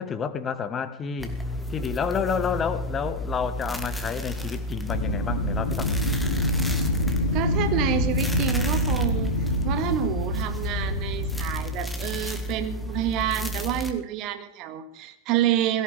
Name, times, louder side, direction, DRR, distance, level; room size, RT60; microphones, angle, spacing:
voice 1, 0.0-1.3 1.7-6.0, left 6 dB, 25° left, 12 dB, 1.4 m, -29 dB
sound 1, 1.2-13.9, equal, ahead, 1.9 m, -32 dB
Wind, 4.9-11.8, left 1 dB, 65° left, 2.6 m, -26 dB
voice 2, 7.3-9.4 9.6-15.8, right 11 dB, 40° right, 9 dB, 1.9 m, -28 dB
18.0 x 17.0 x 3.5 m, 0.82 s
figure-of-eight pair, 90°, 0 cm